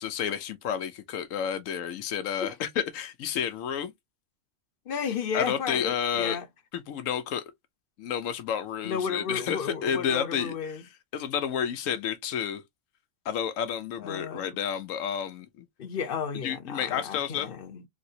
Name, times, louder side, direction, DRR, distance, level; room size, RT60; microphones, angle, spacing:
voice 1, 0.0-3.9 5.3-6.4 6.7-7.4 8.0-10.8 11.1-12.6 13.2-15.6 16.4-17.5, left 8 dB, 85° left, 1.0 m, -30 dB
voice 2, 4.9-6.5 8.8-10.8 14.0-14.6 15.8-17.8, left 6 dB, 50° left, 0.8 m, -33 dB
3.4 x 2.9 x 2.7 m
omnidirectional pair, 1.3 m